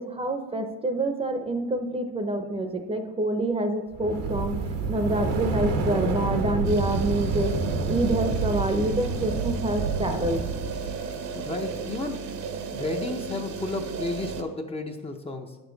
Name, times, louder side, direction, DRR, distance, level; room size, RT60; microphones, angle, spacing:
voice 1, 0.0-4.5 4.9-7.5 7.9-10.4, right 1 dB, 20° right, 6 dB, 0.7 m, -27 dB
sound 1, 3.9-10.9, right 4 dB, 85° right, 1.2 m, -28 dB
sound 2, 6.6-14.4, right 5 dB, 60° right, 0.9 m, -35 dB
voice 2, 11.3-12.4 12.7-15.6, left 2 dB, 20° left, 3 dB, 0.7 m, -32 dB
9.5 x 7.0 x 4.0 m, 1.2 s
cardioid pair, 120°, 32 cm